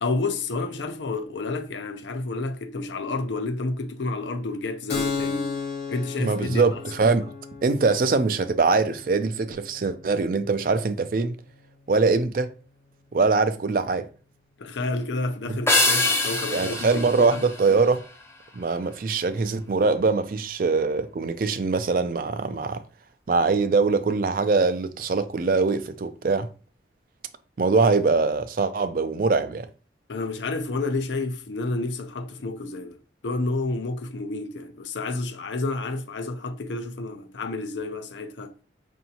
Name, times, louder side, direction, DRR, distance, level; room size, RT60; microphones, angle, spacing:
voice 1, 0.0-5.6 5.9-6.7 14.6-17.4 30.1-33.0 33.2-38.5, left 3 dB, 90° left, 0.5 m, -30 dB
Keyboard (musical), 4.9-12.2, left 5 dB, 60° left, 1.1 m, -36 dB
voice 2, 6.2-7.3 7.6-11.4 11.9-12.5 13.1-14.1 15.5-15.6 16.5-18.0 18.6-22.8 23.3-26.5 27.6-29.7, right 4 dB, 50° right, 0.4 m, -23 dB
sound 1, 15.7-18.3, left 2 dB, 15° left, 0.4 m, -25 dB
5.4 x 2.6 x 2.8 m
head